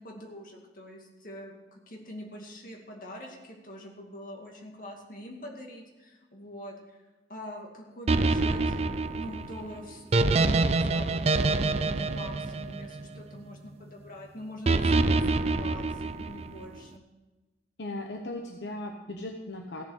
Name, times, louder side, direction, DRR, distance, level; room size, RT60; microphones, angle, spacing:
voice 1, 0.0-7.0 7.3-17.1, left 1 dB, 50° left, 1 dB, 2.4 m, -44 dB
sound 1, 8.1-13.4 14.7-16.6, right 3 dB, 35° right, 0.4 m, -26 dB
voice 2, 17.8-19.8, left 1 dB, 75° left, 3 dB, 1.0 m, -37 dB
15.5 x 7.2 x 6.5 m, 1.2 s
head